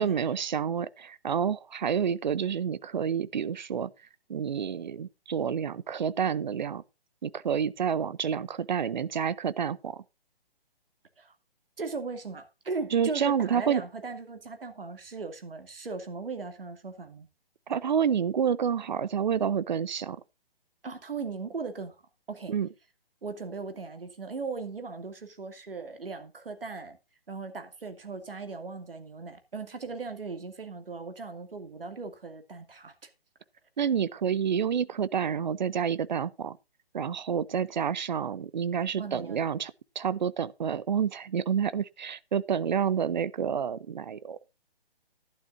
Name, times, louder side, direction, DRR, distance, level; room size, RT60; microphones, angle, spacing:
voice 1, 0.0-3.9 4.3-6.8 7.2-10.0 12.9-13.8 17.7-20.2 22.5-22.7 33.8-36.6 36.9-44.4, right 7 dB, 50° right, 0.7 m, -29 dB
voice 2, 11.8-17.3 20.8-22.0 22.3-22.5 23.2-27.0 27.3-33.1 39.0-39.5, right 4 dB, 70° right, 2.5 m, -38 dB
13.5 x 11.5 x 2.6 m
figure-of-eight pair, 135°, 30 cm